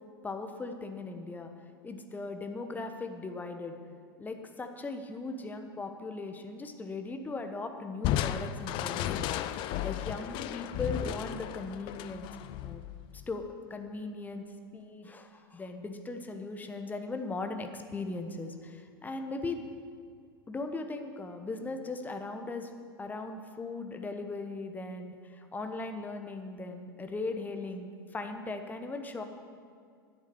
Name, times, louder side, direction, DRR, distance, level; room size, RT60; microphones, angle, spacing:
voice 1, 0.2-1.5 1.8-3.8 4.2-9.3 9.8-12.8 13.3-14.4 14.7-19.6 20.5-22.7 23.0-29.2, left 3 dB, 15° left, 6 dB, 1.0 m, -38 dB
Crushing, 8.0-13.4, left 11 dB, 40° left, 0.5 m, -34 dB
10.5 x 8.3 x 7.0 m, 2.3 s
hypercardioid pair, 90°, 12 cm